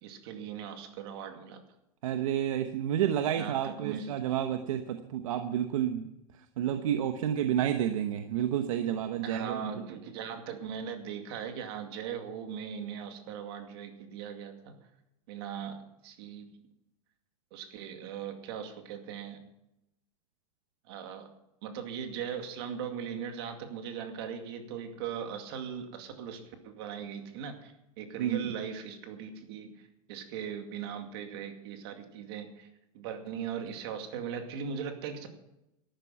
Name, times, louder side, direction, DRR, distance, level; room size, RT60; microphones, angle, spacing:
voice 1, 0.0-1.6 3.4-4.1 9.2-14.7 15.3-15.8 16.0-16.5 17.5-19.4 20.9-21.3 21.6-32.7 32.9-35.3, right 7 dB, 45° right, 5 dB, 2.3 m, -39 dB
voice 2, 2.0-6.1 6.4-9.6 28.2-28.4, right 10 dB, 70° right, 7 dB, 1.1 m, -30 dB
13.0 x 11.5 x 5.8 m, 0.88 s
supercardioid pair, 175°, 18 cm